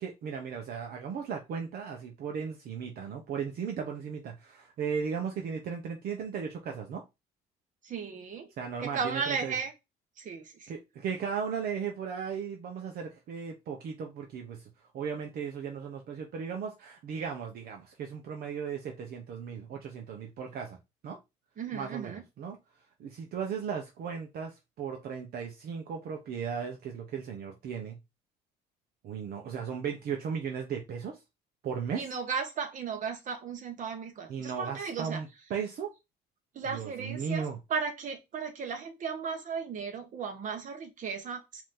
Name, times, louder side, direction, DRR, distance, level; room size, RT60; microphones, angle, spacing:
voice 1, 0.0-7.0 8.6-9.5 10.7-20.8 21.0-21.2 21.7-22.6 23.0-28.0 29.0-31.2 31.6-32.1 34.3-35.9 36.7-37.6, right 6 dB, 65° right, 1.0 m, -36 dB
voice 2, 7.8-8.5 8.8-9.7 10.2-10.7 21.6-22.2 32.0-35.2 36.5-41.6, right 6 dB, 50° right, 1.4 m, -35 dB
4.8 x 2.9 x 3.8 m
cardioid pair, 110°, 17 cm